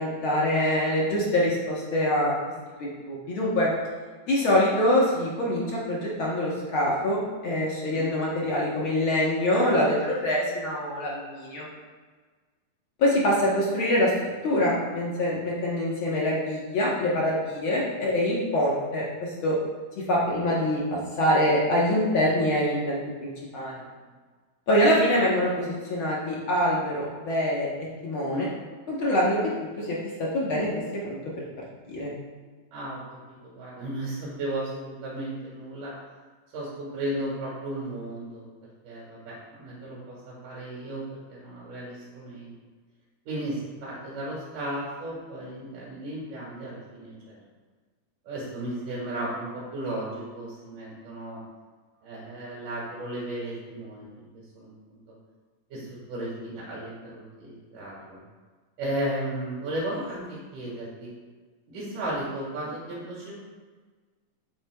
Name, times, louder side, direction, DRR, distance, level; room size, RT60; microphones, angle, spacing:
voice 1, 0.0-2.3 2.8-3.7 4.3-11.7 13.0-19.5 20.1-23.8 24.7-27.7 28.0-28.5 28.9-30.7 31.0-31.2 31.9-32.1, left 1 dB, 55° left, -5 dB, 1.5 m, -25 dB
voice 2, 7.8-8.2 17.0-17.2 17.7-17.9 23.5-23.8 28.2-28.6 32.7-35.9 36.5-38.5 38.8-42.5 43.3-47.4 48.3-51.4 52.0-55.0 55.7-58.2 58.8-61.1 61.7-63.3, right 1 dB, 85° right, -6 dB, 3.2 m, -35 dB
8.3 x 7.8 x 2.3 m, 1.4 s
omnidirectional pair, 3.5 m